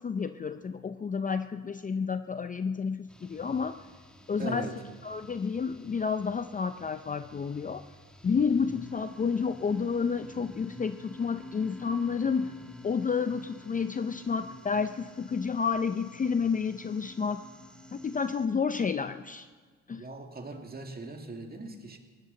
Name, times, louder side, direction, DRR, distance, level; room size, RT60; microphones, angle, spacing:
voice 1, 0.0-3.7 4.3-4.7 5.0-7.8 8.2-12.5 12.8-17.4 17.9-19.5 19.9-20.1, left 5 dB, 25° left, 10 dB, 0.5 m, -30 dB
sound 1, 3.1-18.5, left 1 dB, 5° left, 1.4 m, -49 dB
voice 2, 4.4-4.8 19.9-22.0, right 3 dB, 30° right, 4 dB, 2.0 m, -39 dB
19.5 x 17.5 x 4.0 m, 1.5 s
cardioid pair, 90°, 30 cm